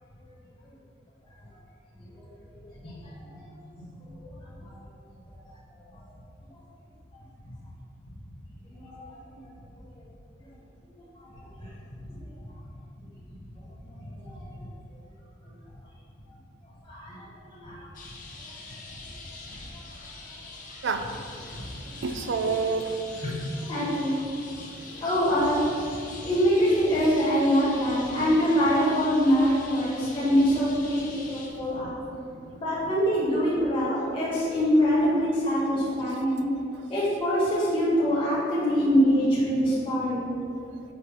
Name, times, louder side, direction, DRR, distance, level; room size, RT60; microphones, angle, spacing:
voice 1, 2.5-2.9 3.2-3.4 4.2-4.3 4.6-4.7 6.0-6.1 8.6-9.4 11.6-11.7 12.0-12.3 12.9-13.0 14.0-14.6 16.9-17.2 17.5-17.9 18.4-18.5 19.7-19.8 21.5-21.9 23.2-23.4 23.7-24.2 25.0-25.7 26.2-32.0 32.6-36.5 36.9-40.3, equal, 30° left, -9 dB, 1.5 m, -24 dB
sound 1, 17.9-31.5, left 3 dB, 45° left, 0.8 m, -44 dB
voice 2, 20.8-21.3 21.9-23.2 24.6-25.0 26.2-26.3 31.3-31.9 32.3-32.6, right 4 dB, 75° right, 7 dB, 0.4 m, -31 dB
6.6 x 3.1 x 5.3 m, 2.4 s
head